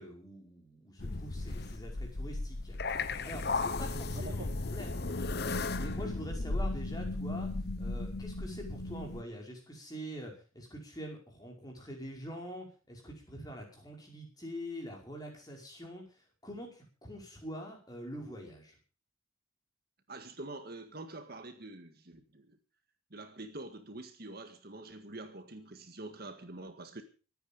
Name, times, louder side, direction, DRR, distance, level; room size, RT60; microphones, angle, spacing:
voice 1, 0.0-2.8 3.0-7.5 7.8-18.8, equal, 20° left, 5.4 m, -45 dB
sound 1, 1.0-9.2, left 3 dB, 50° left, 1.0 m, -35 dB
voice 2, 20.1-22.6 23.1-27.0, right 2 dB, 45° right, 1.8 m, -46 dB
25.0 x 9.6 x 5.4 m
head